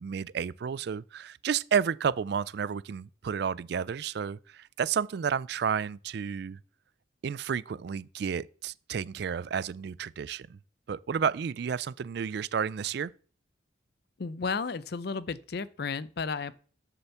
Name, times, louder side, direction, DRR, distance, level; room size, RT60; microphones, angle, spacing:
voice 1, 0.0-6.6 7.2-10.6 10.9-13.1, right 7 dB, 55° right, 0.3 m, -31 dB
voice 2, 14.2-16.6, left 4 dB, 55° left, 0.5 m, -33 dB
7.0 x 6.7 x 7.0 m
head